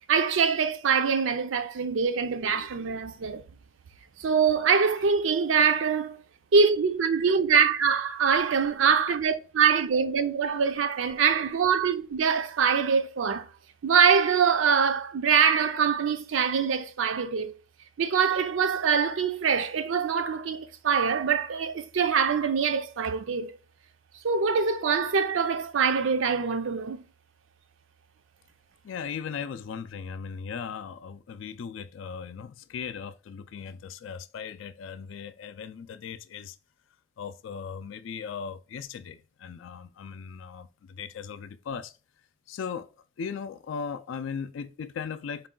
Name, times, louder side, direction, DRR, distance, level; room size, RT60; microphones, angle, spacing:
voice 1, 0.1-3.4 4.2-6.2 6.5-13.5 13.8-17.5 18.0-23.5 24.2-27.0, right 6 dB, 75° right, 0.5 m, -24 dB
voice 2, 28.8-36.6 37.2-41.9 42.5-42.9 43.2-45.5, left 6 dB, 70° left, 0.3 m, -38 dB
4.6 x 2.3 x 3.7 m
head